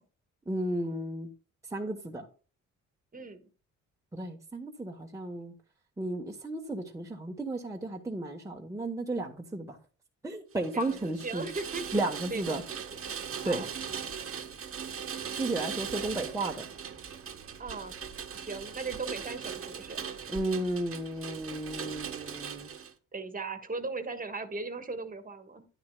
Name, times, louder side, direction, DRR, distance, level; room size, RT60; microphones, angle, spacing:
voice 1, 0.5-1.3 1.7-2.2 4.1-5.5 6.0-9.8 10.2-11.5 11.9-12.6 13.4-13.6 15.4-16.7 20.3-22.7, right 2 dB, 10° right, 0 dB, 1.1 m, -33 dB
Rain, 10.6-22.9, right 7 dB, 45° right, 1.2 m, -39 dB
voice 2, 10.7-11.8 12.3-12.8 13.4-13.7 17.6-17.9 18.3-20.1 23.1-25.7, right 3 dB, 30° right, 8 dB, 1.4 m, -38 dB
10.5 x 9.5 x 2.2 m, 0.37 s
cardioid pair, 90°, 30 cm